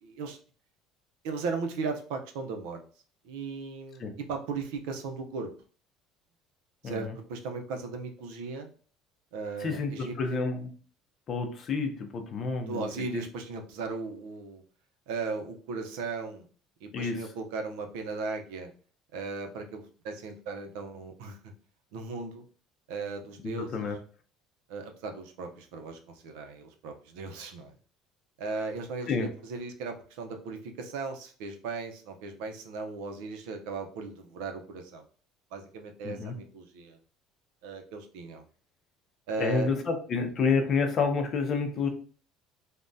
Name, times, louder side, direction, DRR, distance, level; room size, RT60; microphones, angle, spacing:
voice 1, 0.0-0.4 1.2-2.8 3.2-5.5 6.8-8.7 9.3-10.4 12.6-14.6 15.1-16.5 16.8-18.7 19.1-21.4 21.9-22.4 22.9-23.8 24.7-27.7 28.4-35.0 35.5-37.0 37.6-38.4 39.3-39.7, right 4 dB, 85° right, 5 dB, 0.5 m, -37 dB
voice 2, 6.8-7.1 9.6-10.7 11.3-12.8 13.1-13.2 16.9-17.2 23.4-24.0 29.1-29.3 36.0-36.3 39.4-41.9, left 4 dB, 30° left, 6 dB, 0.5 m, -29 dB
3.4 x 2.1 x 2.6 m, 0.41 s
cardioid pair, 170°, 0 cm